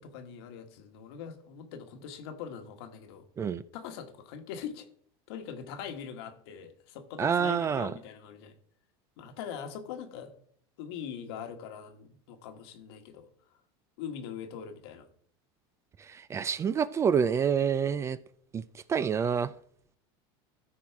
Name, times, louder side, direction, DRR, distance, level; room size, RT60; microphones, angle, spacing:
voice 1, 0.0-3.2 3.7-4.9 5.3-8.5 9.2-10.3 10.8-13.3 14.0-15.1, left 8 dB, 75° left, 6 dB, 1.5 m, -42 dB
voice 2, 7.2-7.9 16.1-18.2 18.5-18.6 18.9-19.5, right 7 dB, 20° right, 17 dB, 0.4 m, -27 dB
13.5 x 4.6 x 4.7 m, 0.62 s
supercardioid pair, 130°, 13 cm